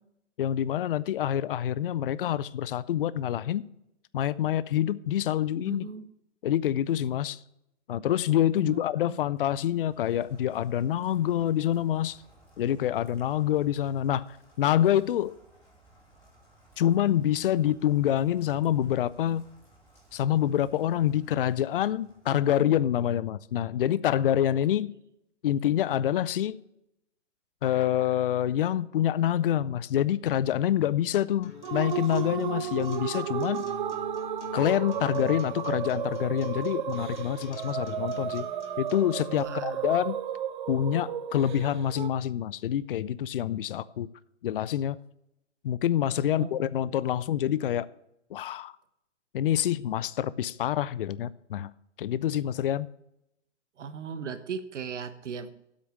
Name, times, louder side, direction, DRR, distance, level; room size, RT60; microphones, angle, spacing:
voice 1, 0.4-3.7 4.1-5.9 6.4-7.4 7.9-12.2 12.6-15.3 16.8-19.5 20.1-24.9 25.4-26.6 27.6-33.6 34.5-38.5 38.8-40.2 40.7-44.1 44.4-45.0 45.6-47.9 48.3-48.7 49.3-51.7 52.0-52.9, left 11 dB, 50° left, 0.4 m, -26 dB
voice 2, 5.6-6.1 8.6-9.2 39.3-39.8 46.2-47.2 53.8-55.5, right 6 dB, 75° right, 1.2 m, -38 dB
Rain, 9.2-23.0, right 1 dB, 5° left, 2.9 m, -59 dB
Acoustic guitar, 31.4-39.4, left 5 dB, 70° left, 1.5 m, -46 dB
sound 1, 31.6-42.1, right 10 dB, 40° right, 0.6 m, -33 dB
8.3 x 6.1 x 8.0 m
hypercardioid pair, 150°, 36 cm